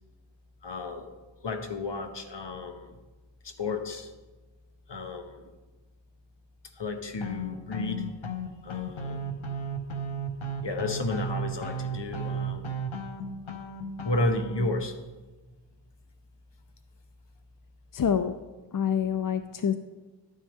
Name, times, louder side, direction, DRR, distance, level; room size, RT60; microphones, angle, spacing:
voice 1, 0.6-1.1 1.4-2.9 3.4-4.1 4.9-5.5 6.8-8.1 8.6-9.2 10.6-12.7 14.0-14.9, left 2 dB, 65° left, 7 dB, 1.2 m, -32 dB
sound 1, 7.2-14.6, right 2 dB, 85° left, 1.1 m, -34 dB
voice 2, 17.9-18.3 18.7-19.8, left 8 dB, 45° left, 10 dB, 0.5 m, -26 dB
11.5 x 9.2 x 3.6 m, 1.2 s
wide cardioid pair, 45°, 46 cm